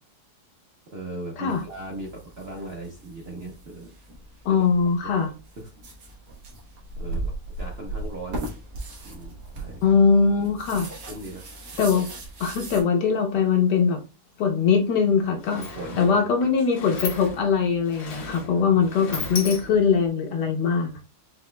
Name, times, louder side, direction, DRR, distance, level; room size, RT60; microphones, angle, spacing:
voice 1, 0.9-3.9 4.5-4.6 5.0-5.3 7.0-8.5 9.0-9.8 11.1-11.4 15.5-16.3 18.1-18.8 20.8-21.0, right 2 dB, 40° right, -2 dB, 0.9 m, -38 dB
sound 1, 1.5-12.8, right 2 dB, 75° right, 2.0 m, -38 dB
voice 2, 4.4-5.3 9.8-10.9 11.8-12.1 12.4-14.0 14.4-15.6 16.0-20.9, left 6 dB, 65° left, 2 dB, 1.4 m, -21 dB
Sliding door, 14.8-14.9 15.1-20.1, left 4 dB, 85° left, 1.9 m, -37 dB
6.0 x 3.0 x 2.2 m, 0.30 s
omnidirectional pair, 2.0 m